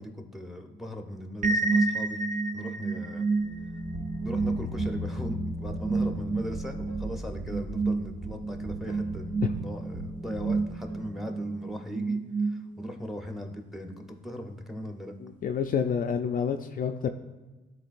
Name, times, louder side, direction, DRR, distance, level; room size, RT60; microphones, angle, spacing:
voice 1, 0.0-2.2 2.5-3.2 4.2-12.2 12.4-15.1, equal, ahead, 4 dB, 0.9 m, -39 dB
sound 1, 1.4-13.1, right 3 dB, 40° right, 0.5 m, -30 dB
sound 2, 3.3-11.8, left 1 dB, 80° right, 2.1 m, -39 dB
sound 3, 3.9-4.1 4.4-4.5 4.8-4.9 5.2-5.4 5.6-5.8 6.1-6.2 6.5-6.6 6.9-7.5 7.8-7.9 8.2-8.4 8.6-8.8 9.1-9.2 9.5-9.6 9.9-10.1 10.4-10.6, right 4 dB, 60° right, 1.0 m, -40 dB
voice 2, 15.2-17.1, left 7 dB, 45° left, 5 dB, 0.4 m, -28 dB
12.0 x 4.0 x 2.5 m, 1.2 s
cardioid pair, 90°, 20 cm